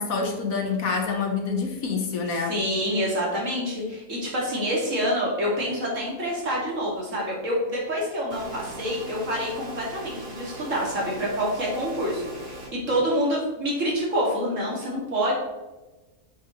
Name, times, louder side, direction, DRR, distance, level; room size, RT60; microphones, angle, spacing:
voice 1, 0.0-2.6, left 4 dB, 65° left, 3 dB, 1.6 m, -27 dB
voice 2, 2.5-15.3, equal, 55° right, -4 dB, 2.8 m, -27 dB
sound 1, 8.3-12.7, right 2 dB, 80° right, 2.6 m, -40 dB
8.1 x 7.2 x 3.2 m, 1.1 s
omnidirectional pair, 1.6 m